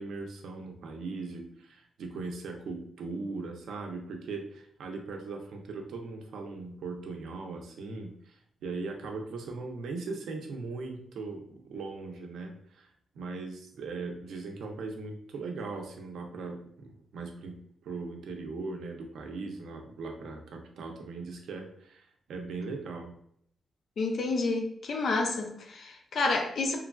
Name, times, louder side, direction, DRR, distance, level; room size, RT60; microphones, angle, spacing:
voice 1, 0.0-12.9 13.1-17.6 17.8-23.1, right 3 dB, 85° right, 3 dB, 0.5 m, -39 dB
voice 2, 24.0-26.8, left 3 dB, 60° left, 3 dB, 0.5 m, -29 dB
3.0 x 2.3 x 2.2 m, 0.68 s
cardioid pair, 120°, 0 cm